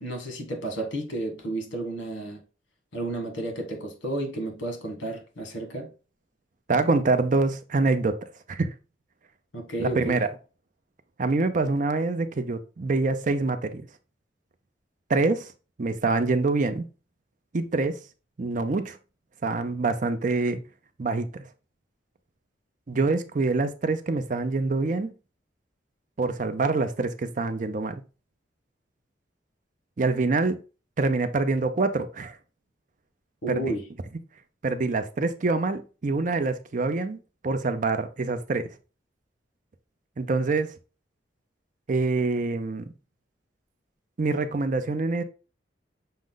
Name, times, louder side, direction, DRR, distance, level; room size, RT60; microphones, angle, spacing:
voice 1, 0.0-2.4 2.9-5.9 9.5-10.2 33.4-33.8, right 1 dB, 85° left, 1.3 m, -32 dB
voice 2, 6.7-8.2 8.5-8.7 9.8-10.3 11.2-13.9 15.1-15.5 15.8-16.9 17.5-18.0 18.4-19.0 19.4-20.6 21.0-21.4 22.9-25.1 26.2-28.0 30.0-30.6 31.0-32.4 33.5-33.7 34.6-38.7 40.2-40.7 41.9-42.9 44.2-45.2, right 3 dB, 45° right, 0.5 m, -25 dB
6.2 x 2.2 x 3.7 m
head